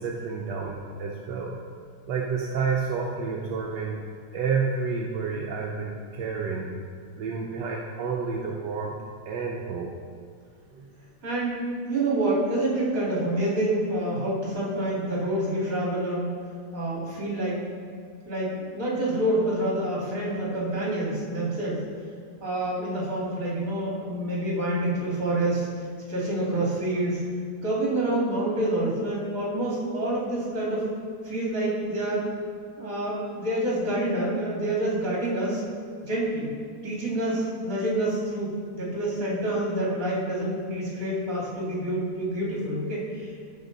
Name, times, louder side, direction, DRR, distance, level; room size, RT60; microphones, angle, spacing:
voice 1, 0.0-1.6 2.1-4.0 4.3-6.7 7.1-8.9 9.3-9.9 10.7-10.9, right 5 dB, 85° right, -2 dB, 1.4 m, -30 dB
voice 2, 11.2-16.3 16.7-17.7 18.2-21.8 22.4-25.7 26.1-27.3 27.6-30.9 31.2-32.3 32.8-35.6 36.0-36.5 36.8-43.3, right 1 dB, 50° right, -6 dB, 2.9 m, -27 dB
14.5 x 5.2 x 4.0 m, 2.1 s
omnidirectional pair, 1.8 m